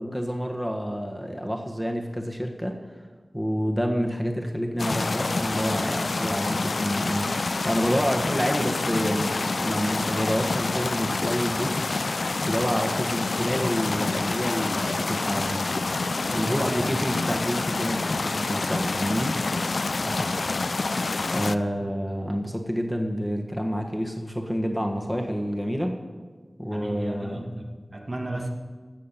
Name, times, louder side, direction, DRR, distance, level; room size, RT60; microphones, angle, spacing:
voice 1, 0.0-2.8 3.3-12.0 12.4-15.7 16.3-19.3 21.3-26.0 26.6-27.4, equal, ahead, 2 dB, 1.5 m, -28 dB
sound 1, 4.8-21.5, left 3 dB, 80° left, 0.4 m, -27 dB
voice 2, 16.3-17.1 20.0-20.6 26.7-28.5, right 1 dB, 50° right, 1 dB, 1.8 m, -35 dB
15.5 x 6.2 x 7.4 m, 1.4 s
wide cardioid pair, 50°, 0 cm